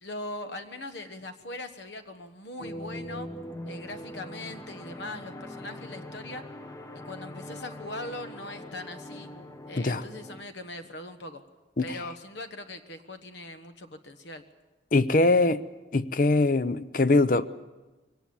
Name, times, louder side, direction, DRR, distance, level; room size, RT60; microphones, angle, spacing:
voice 1, 0.0-3.3 3.6-6.4 6.9-9.3 9.7-11.4 11.8-14.4, left 2 dB, 70° left, 8 dB, 1.3 m, -40 dB
sound 1, 2.6-10.4, equal, 15° left, 0.9 m, -42 dB
voice 2, 14.9-15.6 15.9-17.5, left 2 dB, 45° left, 14 dB, 0.6 m, -22 dB
23.0 x 18.5 x 7.2 m, 1.1 s
head